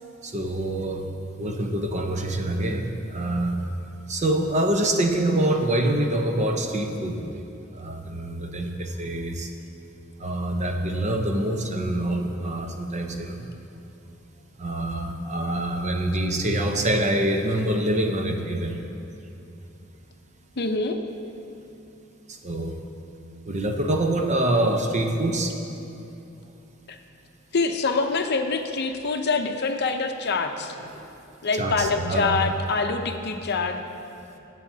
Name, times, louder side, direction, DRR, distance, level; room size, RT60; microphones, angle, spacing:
voice 1, 0.2-1.0 1.4-3.5 4.1-7.1 7.8-9.5 10.2-13.4 14.6-18.8 22.4-22.7 23.5-25.5 31.6-32.4, right 1 dB, 35° right, 3 dB, 0.8 m, -25 dB
voice 2, 20.6-21.0 26.9-27.0 27.5-30.7 31.4-33.8, left 4 dB, 50° left, 5 dB, 0.7 m, -25 dB
20.0 x 8.3 x 2.8 m, 2.8 s
head